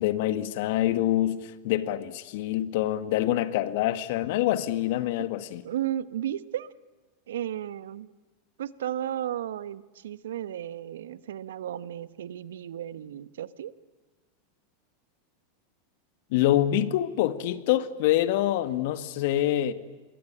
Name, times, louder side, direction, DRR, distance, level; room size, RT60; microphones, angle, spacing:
voice 1, 0.0-5.6 16.3-19.7, left 13 dB, 65° left, 1.7 m, -26 dB
voice 2, 5.6-6.7 7.3-8.1 8.6-13.7, right 11 dB, 75° right, 1.1 m, -34 dB
28.0 x 22.0 x 8.8 m
hypercardioid pair, 95°, 0 cm